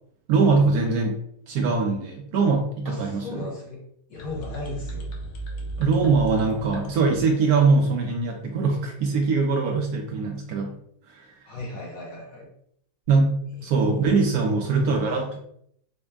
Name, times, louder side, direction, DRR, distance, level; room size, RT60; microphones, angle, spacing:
voice 1, 0.3-1.2 1.5-3.4 5.8-10.8 11.1-11.3 13.1-13.3 13.6-15.4, right 4 dB, 70° right, 1 dB, 0.9 m, -22 dB
voice 2, 2.8-3.8 4.1-5.1 11.5-12.5 13.6-13.9 14.6-14.9, left 2 dB, 60° left, -1 dB, 1.2 m, -36 dB
sound 1, 4.1-8.1, right 2 dB, 90° left, 1.4 m, -37 dB
4.2 x 2.1 x 3.4 m, 0.70 s
omnidirectional pair, 1.9 m